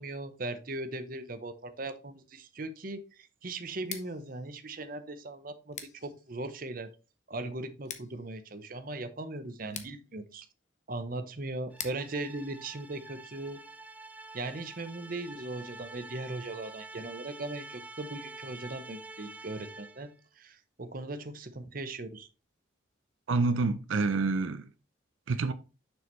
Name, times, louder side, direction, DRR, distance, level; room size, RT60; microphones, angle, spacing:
voice 1, 0.0-6.9 7.3-10.5 10.9-13.6 14.3-22.3, right 2 dB, 45° right, 0.8 m, -39 dB
Scissors, 3.7-13.6, left 8 dB, 35° left, 0.9 m, -49 dB
sound 1, 11.7-20.1, right 3 dB, 10° right, 0.5 m, -47 dB
voice 2, 23.3-24.7 25.3-25.5, right 3 dB, 80° right, 0.5 m, -27 dB
6.9 x 6.4 x 3.1 m
head